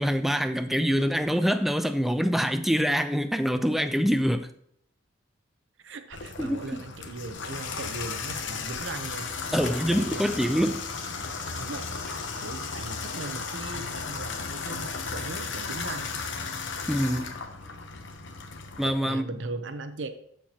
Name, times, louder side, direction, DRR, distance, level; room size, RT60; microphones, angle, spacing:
voice 1, 0.0-4.5 6.4-6.6 9.5-10.8 16.9-17.4 18.8-19.2, equal, ahead, 0.3 m, -25 dB
voice 2, 5.8-10.8 11.5-12.1 12.4-16.1 19.1-20.1, right 3 dB, 70° right, 0.7 m, -39 dB
Water tap faucet / Bathtub (filling or washing), 6.1-18.9, left 4 dB, 70° left, 0.9 m, -35 dB
13.0 x 4.6 x 2.9 m
head